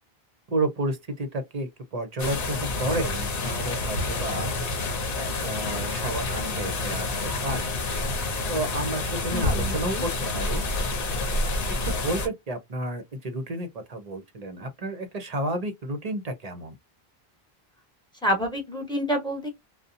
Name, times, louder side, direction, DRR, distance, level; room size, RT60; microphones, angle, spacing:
voice 1, 0.5-4.5 5.2-7.7 8.5-10.6 11.8-16.7, right 1 dB, 45° right, 0.6 m, -31 dB
sound 1, 2.2-12.3, left 2 dB, 65° left, 0.9 m, -28 dB
voice 2, 9.3-10.0 18.2-19.5, equal, 5° left, 0.9 m, -28 dB
2.6 x 2.1 x 2.5 m
omnidirectional pair, 1.0 m